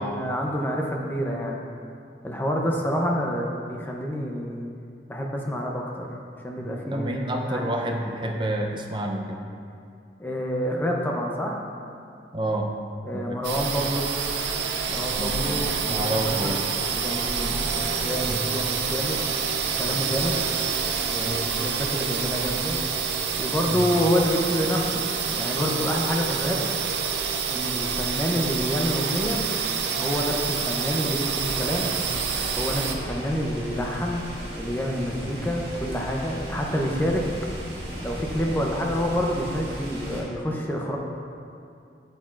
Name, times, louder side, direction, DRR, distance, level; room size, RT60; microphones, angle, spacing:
voice 1, 0.0-1.6 2.2-4.7 5.1-6.2 6.4-7.1 7.5-8.0 10.2-11.6 13.0-14.1 14.9-17.7 17.9-19.2 19.8-20.4 21.1-22.8 23.4-25.0 25.3-26.6 27.5-29.4 30.0-31.9 32.6-34.3 34.5-37.2 38.0-41.0, equal, 10° left, -1 dB, 0.6 m, -28 dB
voice 2, 6.6-9.4 12.3-12.7 13.1-13.4 15.2-15.4 15.8-16.7 18.3-18.4 19.9-20.1 21.2-21.5 23.7-23.9 35.2-35.3, right 1 dB, 25° right, 1 dB, 0.6 m, -29 dB
sound 1, 13.4-32.9, right 6 dB, 85° right, 0.6 m, -27 dB
sound 2, 31.4-40.2, equal, 65° right, 1.8 m, -36 dB
8.3 x 8.1 x 2.5 m, 2.4 s
head